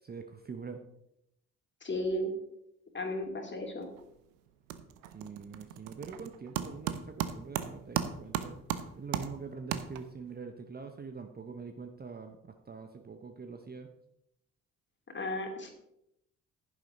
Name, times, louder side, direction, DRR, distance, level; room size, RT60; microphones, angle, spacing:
voice 1, 0.0-0.8 5.1-8.5 9.0-13.9, right 5 dB, 20° right, 6 dB, 0.9 m, -44 dB
voice 2, 1.8-2.3 2.9-3.9 15.1-15.7, left 1 dB, 25° left, 2 dB, 2.7 m, -34 dB
sound 1, 3.8-4.2 4.5-10.3, right 10 dB, 65° right, 0.9 m, -37 dB
10.5 x 10.5 x 3.9 m, 0.79 s
figure-of-eight pair, 45°, 42 cm